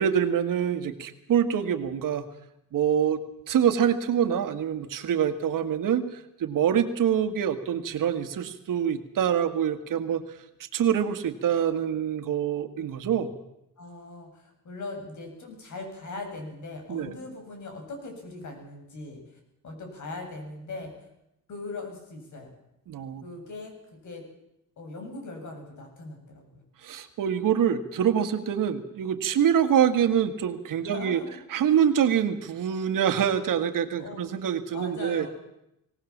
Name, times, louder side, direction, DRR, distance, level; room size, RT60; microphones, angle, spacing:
voice 1, 0.0-2.3 2.7-3.2 3.5-10.2 10.7-13.3 16.9-17.1 22.9-23.2 26.8-31.2 31.5-35.3, right 9 dB, 65° right, 9 dB, 1.9 m, -25 dB
voice 2, 13.8-19.2 19.6-20.9 21.5-22.5 23.2-24.3 24.8-26.6 30.8-31.4 34.0-34.2 34.7-35.3, left 3 dB, 55° left, 3 dB, 7.7 m, -40 dB
24.0 x 18.0 x 7.4 m, 0.84 s
cardioid pair, 135°, 34 cm